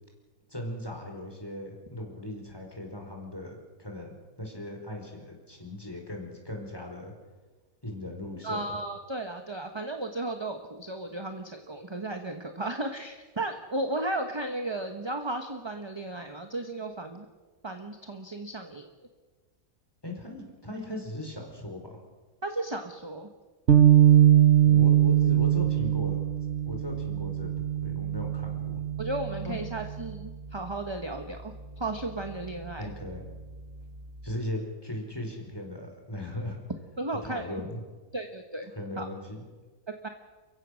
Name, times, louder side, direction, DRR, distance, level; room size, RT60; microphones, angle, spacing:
voice 1, 0.5-7.1 7.8-8.6 20.0-22.0 24.6-26.2 26.7-27.5 27.8-28.8 29.4-29.6 32.8-33.2 34.2-36.6 37.2-37.8 38.7-39.5, left 1 dB, 15° left, 2 dB, 4.5 m, -38 dB
voice 2, 8.4-17.2 17.6-18.9 22.4-23.3 29.0-32.9 37.0-37.4 38.1-39.1 40.0-40.1, right 2 dB, 20° right, 6 dB, 1.2 m, -34 dB
sound 1, 23.7-30.1, right 11 dB, 50° right, 1.3 m, -22 dB
29.5 x 15.5 x 6.4 m, 1.3 s
omnidirectional pair, 1.5 m